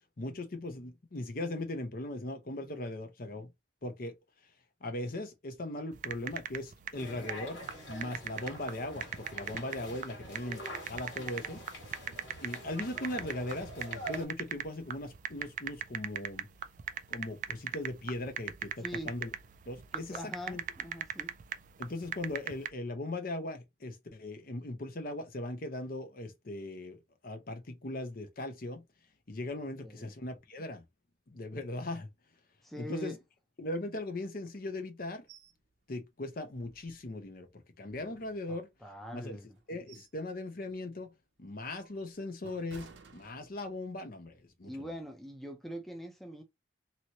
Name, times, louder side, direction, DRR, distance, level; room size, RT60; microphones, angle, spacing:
voice 1, 0.2-3.5 3.8-4.1 4.8-7.6 7.9-11.6 12.4-16.5 17.1-19.3 19.7-20.6 21.8-28.8 29.3-30.8 31.3-32.1 32.8-33.1 33.6-35.3 35.9-37.5 37.8-38.7 39.1-39.4 39.7-41.1 41.4-44.9, left 2 dB, 50° left, 0.7 m, -39 dB
sound 1, 5.9-22.7, right 9 dB, 45° right, 0.3 m, -40 dB
sound 2, 6.9-14.2, equal, 75° left, 1.8 m, -45 dB
voice 2, 7.0-7.3 18.8-19.1 19.9-21.3 29.8-30.1 32.6-33.2 38.5-39.6 44.6-46.4, equal, ahead, 0.6 m, -43 dB
sound 3, 35.3-35.6 36.0-36.1 36.5-37.4 37.9-38.9 39.5-40.3 40.7-40.9 41.5-43.9 44.3-44.5, right 4 dB, 75° right, 0.7 m, -56 dB
3.0 x 2.8 x 2.9 m
head